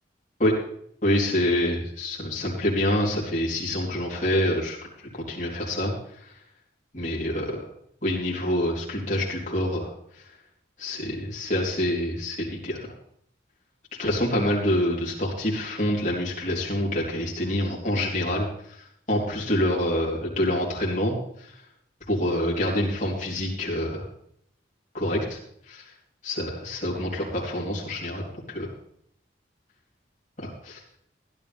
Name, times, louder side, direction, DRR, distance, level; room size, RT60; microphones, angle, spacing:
voice 1, 1.0-4.8 5.1-5.9 6.9-7.7 8.0-9.9 10.8-12.9 14.0-18.5 19.1-21.1 21.4-21.5 22.1-24.0 24.9-25.4 25.7-25.8 26.2-28.2 28.5-28.7 30.4-30.8, left 1 dB, 40° left, -5 dB, 3.8 m, -26 dB
16.0 x 11.5 x 3.6 m, 0.68 s
head